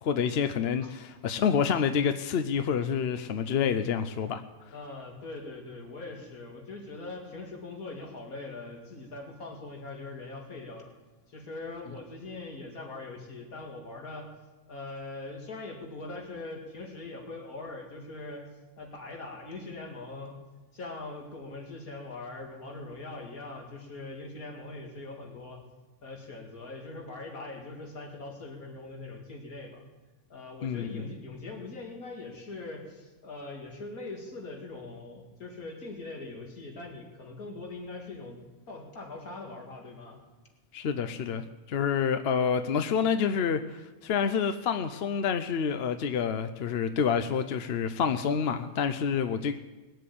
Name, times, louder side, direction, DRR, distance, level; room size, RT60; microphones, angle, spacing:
voice 1, 0.0-4.4 30.6-31.0 40.7-49.5, left 7 dB, 55° left, 9 dB, 0.7 m, -28 dB
voice 2, 4.7-10.9 11.3-14.3 14.7-18.4 18.8-20.4 20.7-25.6 26.0-29.8 30.3-38.4 38.7-40.2, left 3 dB, 75° left, 1 dB, 2.7 m, -42 dB
20.5 x 7.7 x 8.5 m, 1.2 s
omnidirectional pair, 1.5 m